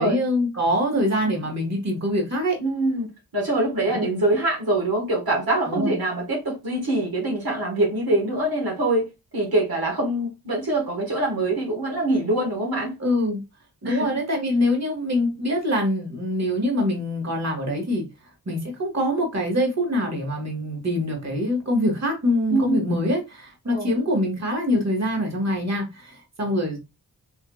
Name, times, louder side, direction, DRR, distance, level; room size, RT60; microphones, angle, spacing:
voice 1, 0.0-2.6 3.9-4.0 5.7-5.9 13.0-13.4 13.8-18.0 18.4-26.8, left 1 dB, 45° right, 1.6 m, -24 dB
voice 2, 2.6-13.0 13.8-14.1 22.5-22.8 23.7-23.9, right 2 dB, 75° right, 1.5 m, -24 dB
4.6 x 2.7 x 2.3 m
wide cardioid pair, 75°, 37 cm